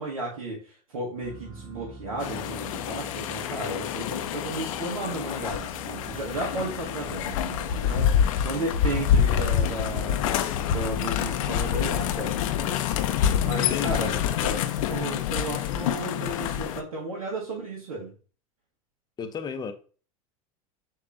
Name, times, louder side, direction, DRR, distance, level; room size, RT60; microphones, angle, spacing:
voice 1, 0.0-10.3 10.6-12.8 13.4-18.1, right 2 dB, 80° right, 1.3 m, -34 dB
sound 1, 1.1-14.6, right 2 dB, 40° right, 2.5 m, -45 dB
sound 2, 2.2-16.8, left 9 dB, 75° left, 0.5 m, -27 dB
voice 2, 13.6-14.2 19.2-19.7, left 6 dB, 25° left, 0.6 m, -34 dB
6.5 x 3.0 x 2.6 m
hypercardioid pair, 90°, 18 cm